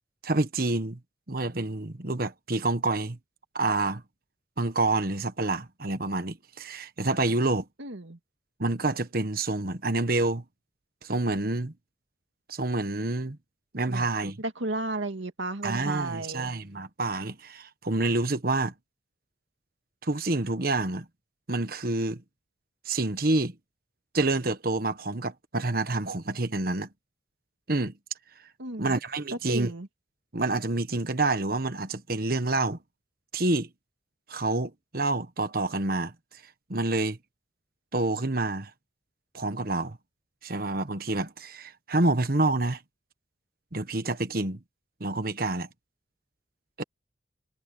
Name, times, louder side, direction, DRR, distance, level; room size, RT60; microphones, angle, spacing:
voice 1, 0.2-1.0 1.3-3.2 3.5-4.0 4.6-7.6 8.6-10.4 11.0-11.7 12.5-13.4 13.7-14.4 15.6-18.7 20.0-21.0 21.5-22.2 22.8-23.5 24.1-26.9 27.7-27.9 28.8-29.7 30.3-32.8 33.3-33.7 34.3-36.1 36.7-37.2 37.9-38.7 39.3-40.0 40.4-42.8 43.7-44.6 45.0-45.7 46.8-46.9, right 2 dB, 50° right, 1.3 m, -28 dB
voice 2, 7.8-8.2 13.9-14.1 14.4-16.5 28.6-29.0 29.3-29.9, right 2 dB, 80° right, 2.1 m, -33 dB
head